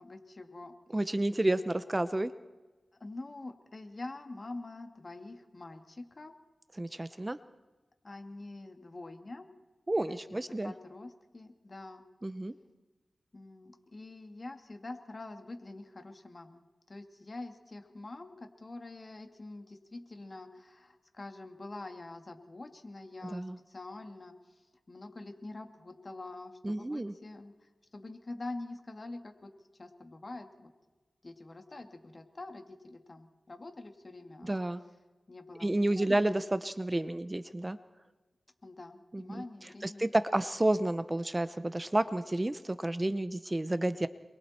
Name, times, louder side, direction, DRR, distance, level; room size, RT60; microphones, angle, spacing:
voice 1, 0.0-0.7 1.2-1.3 3.0-6.3 7.1-7.2 8.0-9.5 10.1-12.0 13.3-16.6 16.9-29.5 29.8-30.7 31.2-34.6 35.3-36.4 38.6-40.1, left 2 dB, 45° left, 5 dB, 2.4 m, -45 dB
voice 2, 0.9-2.3 6.8-7.4 9.9-10.7 12.2-12.5 23.3-23.6 26.6-27.1 34.4-34.8 35.6-37.8 39.1-44.1, right 1 dB, 25° right, 12 dB, 0.8 m, -30 dB
28.0 x 23.0 x 4.4 m, 1.2 s
wide cardioid pair, 70°, 0 cm